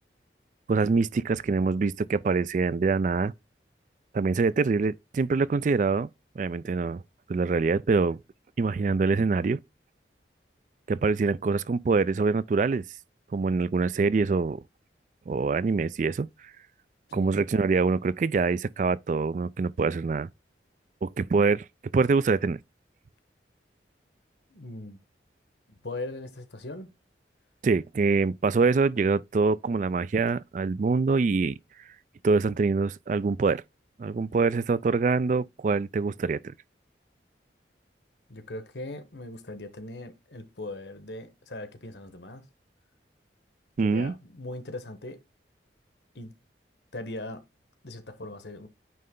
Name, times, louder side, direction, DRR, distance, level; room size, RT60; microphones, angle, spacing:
voice 1, 0.7-3.3 4.1-6.1 6.4-7.0 7.3-8.2 8.6-9.6 10.9-12.8 13.3-14.6 15.3-16.3 17.1-20.3 21.0-21.7 21.9-22.6 27.6-31.5 32.2-33.6 34.0-36.4 43.8-44.1, right 4 dB, 45° right, 0.3 m, -25 dB
voice 2, 24.5-25.0 25.8-26.9 38.3-42.4 43.8-45.2 46.1-46.4 46.9-47.4 47.8-48.7, left 2 dB, 75° left, 1.2 m, -39 dB
9.3 x 3.3 x 3.7 m
head